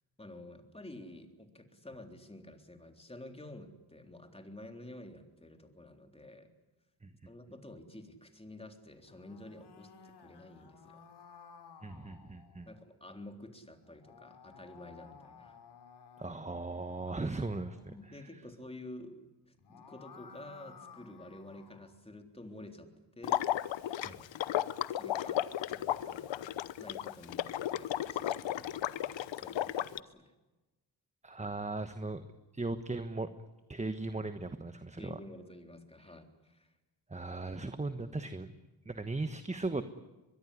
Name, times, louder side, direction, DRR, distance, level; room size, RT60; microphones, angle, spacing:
voice 1, 0.2-6.5 7.3-11.0 12.7-15.6 17.1-17.2 17.9-22.9 23.2-23.4 23.8-24.3 24.9-25.4 25.7-30.3 35.0-36.7, left 1 dB, 15° left, 5 dB, 3.6 m, -50 dB
sound 1, 8.9-12.8 13.8-18.0 19.4-21.9, left 6 dB, 65° left, 3.6 m, -56 dB
voice 2, 11.8-12.7 16.2-17.9 24.0-24.1 31.2-32.2 32.5-33.3 33.7-35.2 37.1-38.5 38.9-39.8, right 3 dB, 15° right, 10 dB, 1.2 m, -37 dB
Water / Liquid, 23.2-30.0, left 12 dB, 85° left, 0.9 m, -34 dB
23.5 x 22.0 x 10.0 m, 1.1 s
cardioid pair, 85°, 44 cm